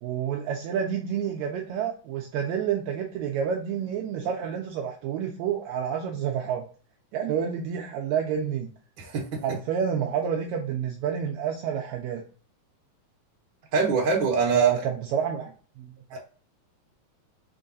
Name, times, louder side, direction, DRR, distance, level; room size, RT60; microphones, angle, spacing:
voice 1, 0.0-6.6 7.1-8.7 9.4-12.2 14.5-15.5 15.8-16.2, right 8 dB, 80° right, 2 dB, 1.7 m, -29 dB
voice 2, 9.0-9.4 13.7-14.7 16.1-16.2, right 4 dB, 55° right, -1 dB, 1.6 m, -24 dB
4.6 x 3.8 x 2.6 m, 0.39 s
omnidirectional pair, 3.4 m